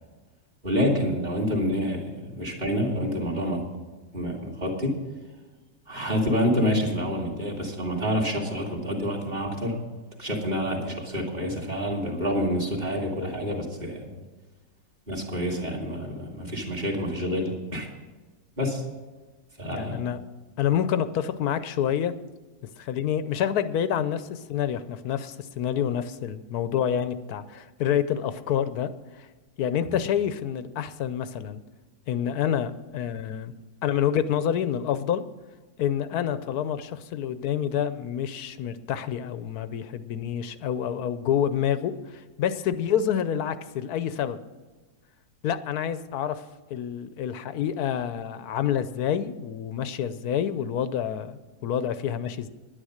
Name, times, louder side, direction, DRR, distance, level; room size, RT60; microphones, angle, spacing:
voice 1, 0.6-3.6 4.1-5.0 5.9-9.8 10.2-14.0 15.1-17.9 18.6-18.8 19.6-20.0 29.9-30.0, equal, 25° right, 0 dB, 2.3 m, -27 dB
voice 2, 19.7-20.2 20.6-22.1 22.8-28.9 29.1-29.3 29.6-31.6 32.1-33.5 33.8-35.2 35.8-44.4 45.4-46.4 46.7-52.5, left 9 dB, 70° left, 13 dB, 1.0 m, -28 dB
10.5 x 10.0 x 6.4 m, 1.3 s
omnidirectional pair, 1.9 m